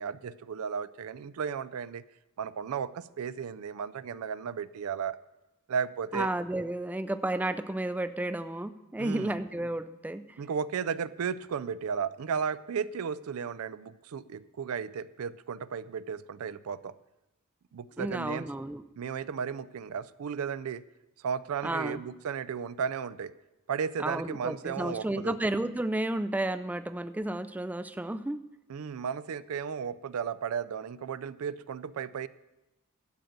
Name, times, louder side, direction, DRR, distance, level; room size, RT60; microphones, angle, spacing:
voice 1, 0.0-2.0 2.4-5.2 5.7-6.3 9.0-9.3 10.4-16.9 17.7-18.5 19.0-20.8 21.2-23.3 23.7-25.4 28.7-32.3, right 6 dB, 80° right, 16 dB, 0.4 m, -34 dB
voice 2, 6.1-10.4 18.0-18.8 21.6-22.0 24.0-28.4, right 1 dB, 5° right, 12 dB, 0.3 m, -32 dB
12.0 x 7.9 x 5.1 m, 0.99 s
head